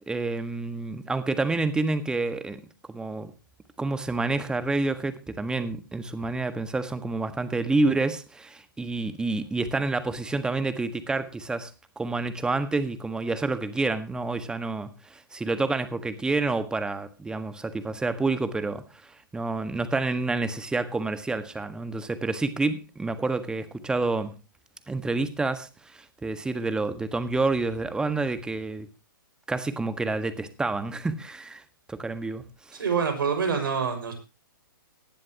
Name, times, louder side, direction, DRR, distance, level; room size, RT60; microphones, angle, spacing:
voice 1, 0.1-2.6 2.9-3.3 3.8-11.7 12.0-18.8 19.3-24.3 24.9-28.9 29.5-31.6 31.9-32.8, right 3 dB, 5° right, 1.6 m, -28 dB
voice 2, 32.8-34.1, right 6 dB, 70° right, 6.0 m, -26 dB
19.0 x 12.0 x 2.9 m
hypercardioid pair, 130°, 12 cm